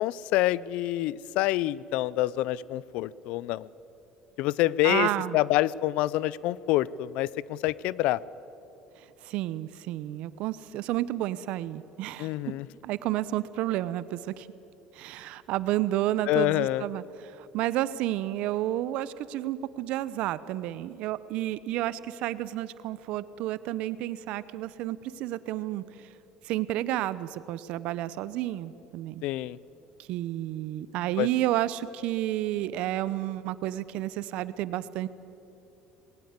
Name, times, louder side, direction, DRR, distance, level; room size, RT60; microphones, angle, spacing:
voice 1, 0.0-3.7 4.4-8.2 12.2-12.7 16.3-16.9 29.2-29.6 31.2-31.3, left 16 dB, 70° left, 21 dB, 0.5 m, -27 dB
voice 2, 4.8-5.4 9.2-12.3 12.8-14.5 15.0-17.0 17.4-25.8 26.5-29.2 30.0-35.1, right 14 dB, 70° right, 16 dB, 0.8 m, -31 dB
20.0 x 18.0 x 8.2 m, 2.9 s
supercardioid pair, 105°, 2 cm